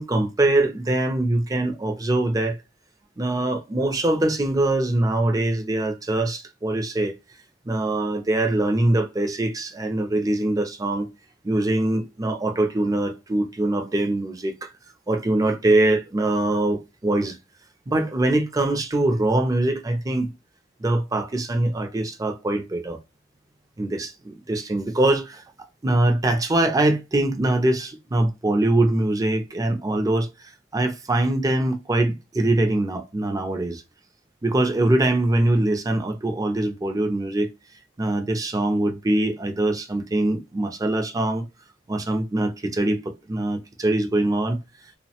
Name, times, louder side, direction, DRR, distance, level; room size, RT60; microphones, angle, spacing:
voice 1, 0.0-2.6 3.2-7.1 7.7-11.1 11.4-14.7 15.1-17.4 17.9-20.3 20.8-23.0 23.8-25.4 25.8-33.8 34.4-37.5 38.0-41.5 41.9-43.0 43.3-44.6, right 2 dB, 20° right, 0.4 m, -23 dB
2.9 x 2.1 x 2.8 m
head